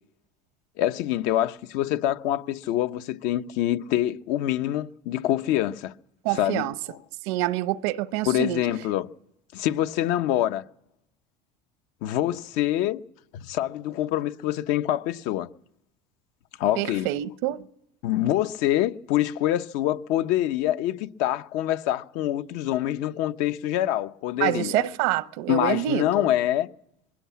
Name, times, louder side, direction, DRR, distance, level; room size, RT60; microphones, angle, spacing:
voice 1, 0.8-5.9 6.3-7.0 8.3-9.1 9.5-10.6 12.0-13.0 13.3-15.5 16.6-17.1 18.0-24.8 25.5-26.7, left 13 dB, 65° left, 0.9 m, -25 dB
voice 2, 6.2-6.7 7.2-8.7 16.8-17.7 24.4-26.3, right 14 dB, 80° right, 0.9 m, -26 dB
22.0 x 16.0 x 8.4 m
cardioid pair, 160°, 14 cm